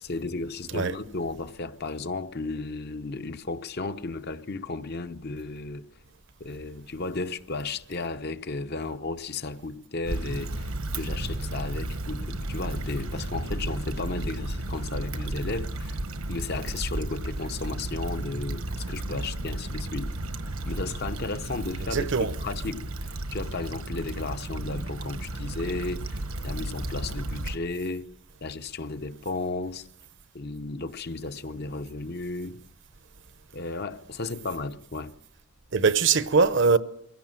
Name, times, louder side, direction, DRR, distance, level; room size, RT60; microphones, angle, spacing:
voice 1, 0.0-5.9 6.4-10.7 10.9-16.0 16.3-20.1 20.7-22.9 23.3-28.1 28.4-29.9 30.3-32.6 33.5-35.1, left 3 dB, 45° left, 0.8 m, -34 dB
Stream / Traffic noise roadway noise / Trickle dribble, 10.0-27.6, right 1 dB, 75° right, 1.3 m, -33 dB
voice 2, 21.9-22.3 35.7-36.8, right 5 dB, 55° right, 0.8 m, -21 dB
23.5 x 16.5 x 7.5 m
head